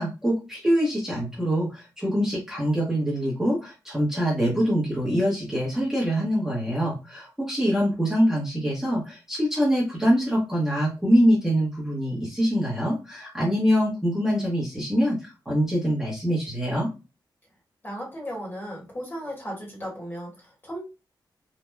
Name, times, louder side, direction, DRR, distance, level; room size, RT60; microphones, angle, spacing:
voice 1, 0.0-16.9, equal, 5° right, -6 dB, 0.8 m, -24 dB
voice 2, 17.8-20.8, equal, 25° left, -2 dB, 1.4 m, -35 dB
3.0 x 2.2 x 2.2 m, 0.29 s
wide cardioid pair, 135°, 8 cm